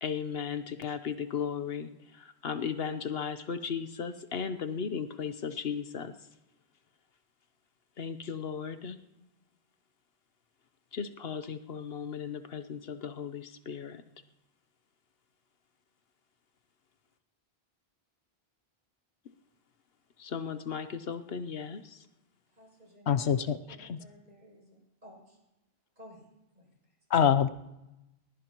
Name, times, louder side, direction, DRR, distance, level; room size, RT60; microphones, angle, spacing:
voice 1, 0.0-6.1 8.0-9.0 10.9-14.0 20.2-22.0, left 6 dB, 70° left, 10 dB, 1.0 m, -36 dB
voice 2, 22.5-23.3 23.7-25.4 26.0-26.3 26.5-27.0, equal, 45° right, -1 dB, 7.3 m, -55 dB
voice 3, 23.1-23.6 23.9-24.0 27.1-27.5, left 8 dB, 90° left, 10 dB, 1.0 m, -24 dB
21.0 x 21.0 x 3.0 m, 0.95 s
omnidirectional pair, 1.1 m